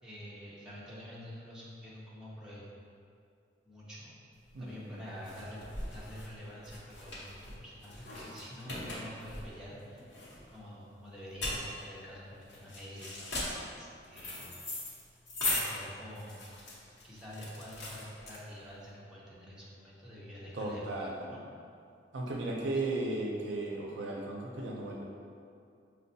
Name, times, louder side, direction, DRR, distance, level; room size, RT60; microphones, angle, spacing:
voice 1, 0.0-2.6 3.6-4.1 4.6-5.6 5.9-10.1 10.5-14.5 15.5-16.4 17.0-21.4 22.7-22.8, equal, 5° right, -9 dB, 0.6 m, -47 dB
sound 1, 4.4-18.8, left 1 dB, 80° left, 0.8 m, -40 dB
voice 2, 4.5-4.9 20.5-21.2 22.1-25.0, right 2 dB, 70° right, -1 dB, 0.4 m, -35 dB
5.4 x 2.1 x 2.6 m, 2.4 s
head